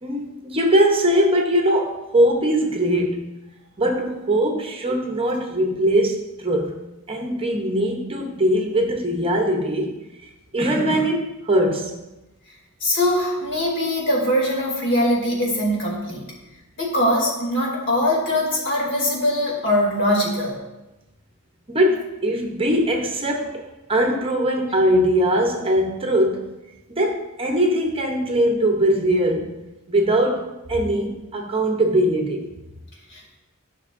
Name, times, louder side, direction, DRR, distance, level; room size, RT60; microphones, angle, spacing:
voice 1, 0.0-3.3 3.8-6.8 7.1-10.0 10.5-12.0 21.7-26.5 26.9-29.5 29.9-32.5, right 1 dB, 25° right, 2 dB, 0.8 m, -21 dB
voice 2, 12.8-16.3 16.8-20.5 33.1-33.4, left 1 dB, 55° left, -2 dB, 2.5 m, -22 dB
13.5 x 6.0 x 2.5 m, 1.0 s
head